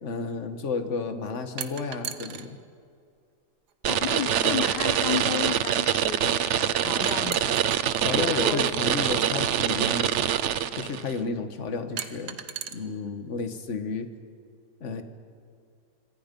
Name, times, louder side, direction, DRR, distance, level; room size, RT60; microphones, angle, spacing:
voice 1, 0.0-2.6 8.0-10.3 10.7-12.4 12.7-14.1 14.8-15.0, left 4 dB, 45° left, 8 dB, 1.7 m, -32 dB
sound 1, 1.6-2.5 3.7-3.8 7.0-7.8 9.3-9.4 12.0-12.7, right 9 dB, 75° right, 1.6 m, -35 dB
voice 2, 3.8-7.5 7.8-7.9 8.2-8.9, left 10 dB, 90° left, 12 dB, 1.5 m, -33 dB
sound 2, 3.8-11.1, right 9 dB, 60° right, 0.8 m, -25 dB
26.0 x 25.5 x 5.4 m, 2.4 s
omnidirectional pair, 1.8 m